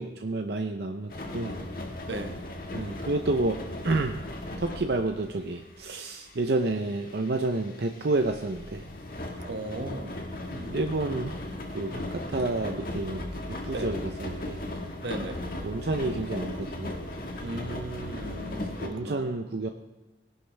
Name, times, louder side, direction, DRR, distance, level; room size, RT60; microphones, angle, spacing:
voice 1, 0.0-1.5 2.7-4.2 4.6-8.9 10.7-11.3 11.7-14.6 15.6-17.0 18.6-19.7, right 2 dB, 65° right, 5 dB, 0.7 m, -30 dB
sound 1, 1.1-18.9, left 1 dB, 50° left, 1.8 m, -37 dB
voice 2, 2.1-2.4 9.4-10.2 10.5-10.7 13.7-13.9 15.0-15.4 17.4-19.3, right 2 dB, 85° right, 8 dB, 1.1 m, -37 dB
19.0 x 11.0 x 3.4 m, 1.1 s
head